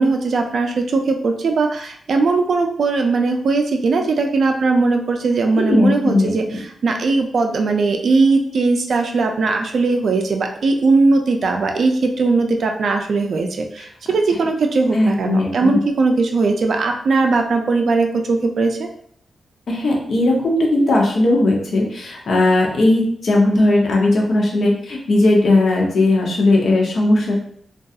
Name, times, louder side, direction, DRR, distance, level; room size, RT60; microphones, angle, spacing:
voice 1, 0.0-18.9, right 3 dB, 55° right, 4 dB, 0.3 m, -19 dB
voice 2, 5.5-6.3 14.9-15.8 19.7-27.4, left 2 dB, 60° left, -1 dB, 0.6 m, -17 dB
2.3 x 2.3 x 2.6 m, 0.63 s
wide cardioid pair, 155°, 0 cm